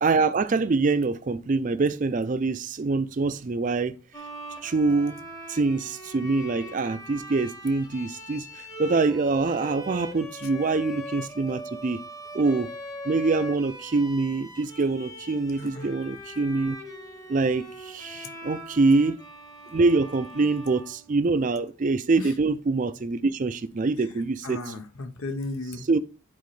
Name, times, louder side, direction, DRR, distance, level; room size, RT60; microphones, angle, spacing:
voice 1, 0.0-3.9 4.6-5.2 5.5-8.5 8.8-12.0 12.3-12.7 13.0-16.8 17.3-19.2 19.7-24.6 25.9-26.0, right 3 dB, 35° right, 0.4 m, -25 dB
Bowed string instrument, 4.1-21.5, equal, 15° left, 0.9 m, -41 dB
voice 2, 24.4-25.9, left 2 dB, 80° left, 0.9 m, -35 dB
10.5 x 4.2 x 3.2 m
head